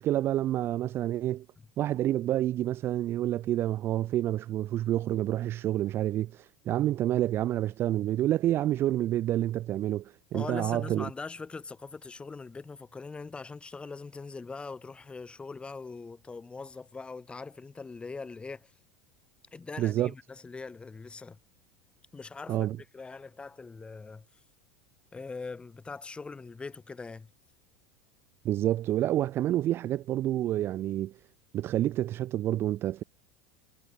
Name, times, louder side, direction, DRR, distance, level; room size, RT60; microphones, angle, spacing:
voice 1, 0.0-1.5 1.8-11.1 19.8-20.1 22.5-22.8 28.4-31.2 31.5-33.0, right 13 dB, 35° right, 0.4 m, -28 dB
voice 2, 10.3-18.7 19.5-21.4 22.1-22.7 22.9-24.3 25.1-27.3, left 4 dB, 15° left, 1.1 m, -41 dB
figure-of-eight pair, 75°, 7 cm